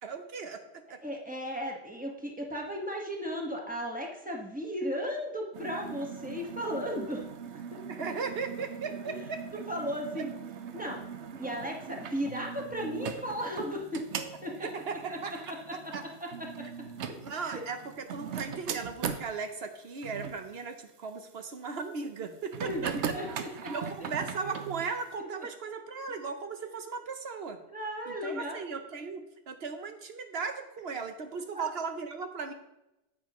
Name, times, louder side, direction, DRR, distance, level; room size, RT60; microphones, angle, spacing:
voice 1, 0.0-1.0 7.9-9.4 14.6-16.0 16.6-16.7 17.2-23.0 23.7-27.6 28.1-32.5, right 5 dB, 65° right, 7 dB, 1.1 m, -37 dB
voice 2, 1.0-7.3 7.7-7.8 9.1-9.2 9.5-10.3 10.7-11.0 11.4-14.1 14.4-14.7 15.1-15.2 15.5-17.6 22.6-23.3 23.6-24.1 25.4-25.5 27.7-28.6 31.5-31.6, equal, 10° right, -1 dB, 1.4 m, -36 dB
sound 1, 5.5-19.3 20.0-20.4 22.5-24.9, right 7 dB, 85° right, 1.0 m, -40 dB
9.2 x 8.5 x 3.1 m, 0.92 s
omnidirectional pair, 1.1 m